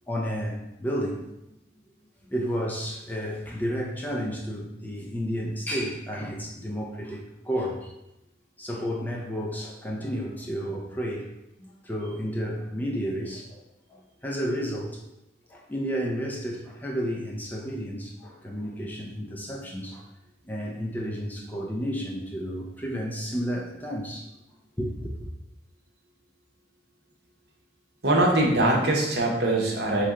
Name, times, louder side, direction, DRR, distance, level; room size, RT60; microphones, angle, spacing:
voice 1, 0.1-1.3 2.2-7.9 8.6-11.3 11.6-13.6 13.9-15.0 15.5-20.1 20.4-24.3 24.8-25.1, equal, 10° left, -2 dB, 0.5 m, -31 dB
voice 2, 28.0-30.1, right 1 dB, 65° right, -1 dB, 1.0 m, -22 dB
4.4 x 3.1 x 3.7 m, 0.88 s
head